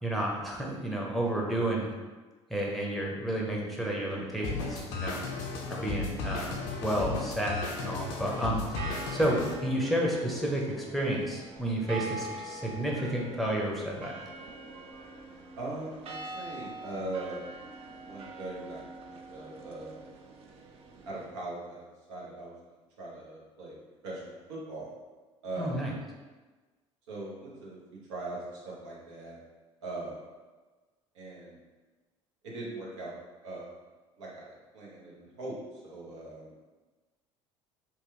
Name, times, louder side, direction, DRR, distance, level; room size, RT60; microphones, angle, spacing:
voice 1, 0.0-1.9 2.5-5.2 5.7-8.8 9.1-14.1 25.6-25.9, right 1 dB, ahead, -2 dB, 0.8 m, -31 dB
sound 1, 4.4-9.5, left 4 dB, 60° left, 0.5 m, -35 dB
sound 2, 7.2-21.3, right 3 dB, 40° right, 0.4 m, -44 dB
voice 2, 15.6-17.6 18.0-18.8 19.1-20.1 21.1-22.6 23.0-23.8 24.0-24.9 25.4-25.8 27.1-27.8 28.1-29.4 29.8-30.2 31.1-31.6 32.4-33.1 33.4-33.8 34.2-36.5, right 2 dB, 70° right, -4 dB, 0.9 m, -40 dB
2.9 x 2.3 x 3.3 m, 1.3 s
figure-of-eight pair, 60°, 16 cm